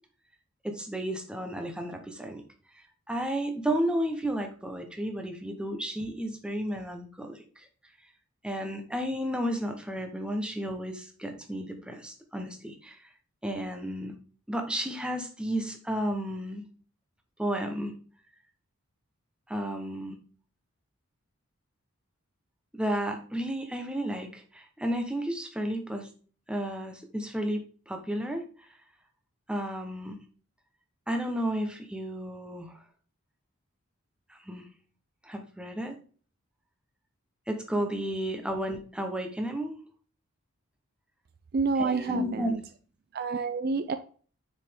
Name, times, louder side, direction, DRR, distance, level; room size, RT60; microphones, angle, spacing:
voice 1, 0.6-2.4 3.1-7.6 8.4-13.0 13.4-14.1 14.5-16.7 17.4-17.9 19.5-20.2 22.7-26.1 26.5-28.4 29.5-30.2 31.1-32.8 34.3-34.7 35.2-36.0 37.5-39.8 41.8-42.5, equal, 5° right, 4 dB, 0.8 m, -32 dB
voice 2, 41.5-42.6 43.1-44.0, right 4 dB, 45° right, 11 dB, 0.3 m, -28 dB
6.4 x 5.0 x 3.5 m, 0.42 s
head